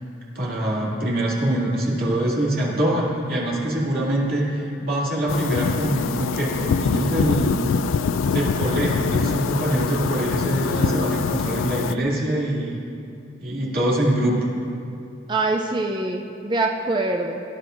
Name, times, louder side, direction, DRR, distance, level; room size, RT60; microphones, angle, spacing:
voice 1, 0.3-7.6 8.3-12.8 13.4-14.5, right 1 dB, 50° right, -5 dB, 2.4 m, -24 dB
sound 1, 5.3-11.9, left 5 dB, 80° left, 0.3 m, -24 dB
voice 2, 15.3-17.4, right 2 dB, 25° right, 2 dB, 0.5 m, -24 dB
18.5 x 10.0 x 2.6 m, 2.6 s
head